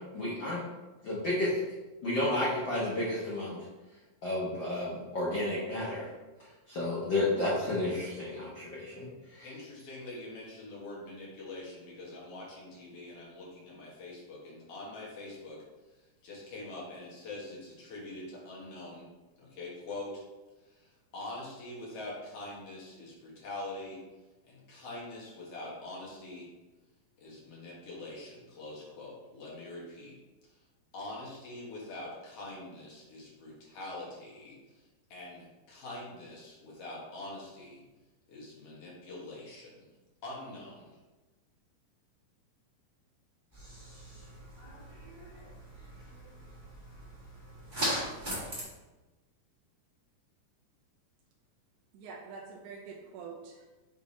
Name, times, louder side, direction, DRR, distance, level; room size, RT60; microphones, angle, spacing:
voice 1, 0.1-0.6 1.0-1.6 2.0-3.6 4.2-6.1 6.7-9.5, left 1 dB, 75° left, -8 dB, 1.0 m, -31 dB
voice 2, 9.4-15.6 15.9-19.1 19.4-20.2 20.6-24.0 24.4-26.5 27.2-30.2 30.5-30.6 30.9-37.8 38.3-39.9 40.2-41.0, left 2 dB, 55° left, -4 dB, 2.1 m, -44 dB
sound 1, 43.5-48.6, equal, 20° right, 1.3 m, -39 dB
voice 3, 51.9-53.7, right 5 dB, 75° right, -2 dB, 2.1 m, -45 dB
6.6 x 3.5 x 4.1 m, 1.1 s
omnidirectional pair, 3.8 m